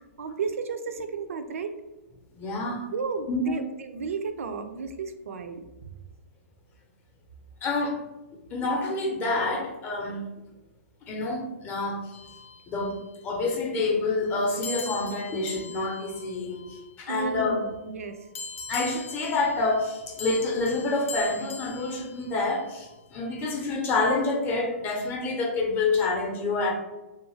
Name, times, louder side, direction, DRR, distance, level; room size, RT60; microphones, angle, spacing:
voice 1, 0.2-1.7 2.9-5.9 17.1-18.2, right 5 dB, 75° right, 8 dB, 0.4 m, -33 dB
voice 2, 2.3-2.8 3.3-3.5 7.6-8.0 8.5-10.2 11.0-12.1 12.7-17.6 18.7-26.7, left 3 dB, 25° left, 0 dB, 0.6 m, -28 dB
sound 1, 12.1-13.3 14.6-17.3 18.3-22.9, left 4 dB, 65° left, 0.5 m, -41 dB
2.4 x 2.2 x 3.1 m, 1.0 s
hypercardioid pair, 130°, 7 cm